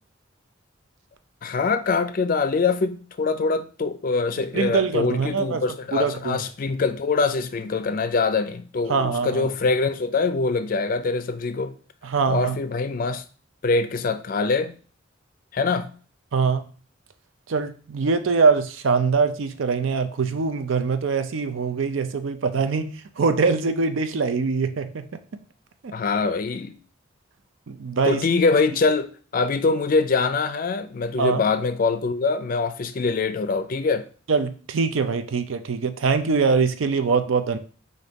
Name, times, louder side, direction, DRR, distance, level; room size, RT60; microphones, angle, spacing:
voice 1, 1.4-11.7 12.3-13.2 13.6-14.7 15.5-15.9 25.9-26.8 28.1-29.1 29.3-34.1, left 4 dB, 45° left, 0.4 m, -23 dB
voice 2, 4.5-5.6 5.9-6.4 8.9-9.5 12.0-12.6 16.3-16.7 17.5-25.0 25.8-25.9 27.7-28.2 31.2-31.5 34.3-37.6, right 5 dB, 85° right, 0.5 m, -23 dB
5.1 x 2.6 x 3.9 m
head